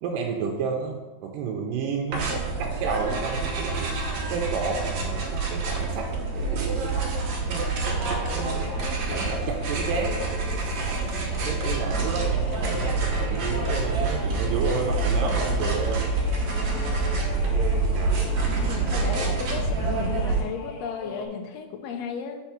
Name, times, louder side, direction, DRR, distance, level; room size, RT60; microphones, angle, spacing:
voice 1, 0.0-3.9 4.3-6.1 6.3-7.0 7.5-7.7 8.0-8.7 9.1-10.2 10.5-16.1 16.9-17.1 17.5-18.2, right 5 dB, 90° right, 1 dB, 2.3 m, -32 dB
sound 1, 2.1-20.4, right 3 dB, 65° right, 2.0 m, -27 dB
sound 2, 7.8-21.3, left 3 dB, 70° left, 1.6 m, -39 dB
voice 2, 18.5-22.4, left 6 dB, 90° left, 5 dB, 1.5 m, -34 dB
5.0 x 4.5 x 5.7 m, 1.1 s
omnidirectional pair, 3.8 m